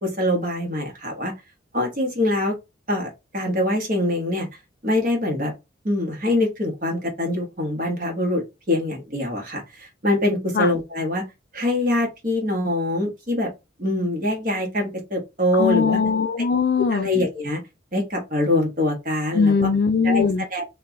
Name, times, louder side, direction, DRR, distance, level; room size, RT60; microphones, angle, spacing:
voice 1, 0.0-1.3 1.7-2.5 2.9-4.5 4.8-5.5 5.8-11.2 11.5-13.5 13.8-16.0 16.8-17.6 17.9-19.7 20.0-20.6, left 1 dB, 45° right, 1.2 m, -24 dB
voice 2, 15.5-17.1 19.3-20.4, left 5 dB, 50° left, 0.3 m, -20 dB
4.4 x 2.3 x 3.8 m
head